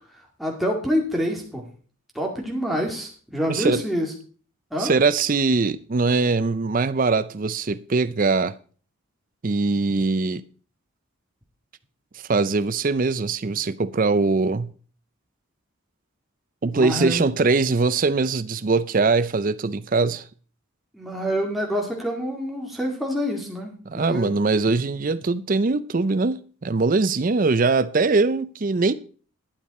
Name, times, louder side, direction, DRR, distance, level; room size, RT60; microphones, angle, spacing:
voice 1, 0.4-1.6 2.1-4.1 4.7-4.9 16.7-17.3 20.9-24.3, equal, ahead, 2.2 m, -27 dB
voice 2, 3.5-3.8 4.8-8.5 9.4-10.4 12.3-14.7 16.6-20.3 23.9-28.9, right 3 dB, 40° right, 0.5 m, -22 dB
11.5 x 9.0 x 4.2 m
head